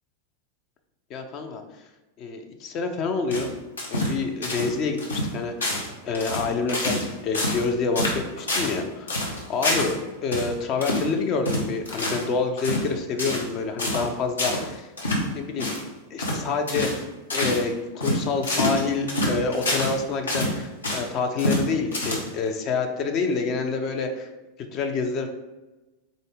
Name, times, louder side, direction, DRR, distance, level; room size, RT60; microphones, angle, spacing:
voice 1, 1.1-1.6 2.2-3.5 3.9-9.2 9.5-9.9 10.2-14.9 15.3-15.7 16.1-24.3 24.7-25.3, left 4 dB, 35° left, 5 dB, 0.5 m, -27 dB
sound 1, 3.3-4.2 4.4-4.7 5.0-5.3 5.6-5.9 6.1-7.1 7.3-7.7 7.9-8.8 9.1-10.0 10.3-10.5 10.8-11.1 11.4-12.3 12.6-12.9 13.2-13.5 13.8-14.1 14.4-14.6 15.0-15.2 15.6-15.8 16.2-16.4 16.7-17.0 17.3-17.6 18.0-20.0 20.3-21.1 21.4-21.6 21.9-22.5, left 1 dB, 75° left, 0.9 m, -26 dB
3.9 x 2.6 x 3.5 m, 1.1 s
figure-of-eight pair, 90°, 0 cm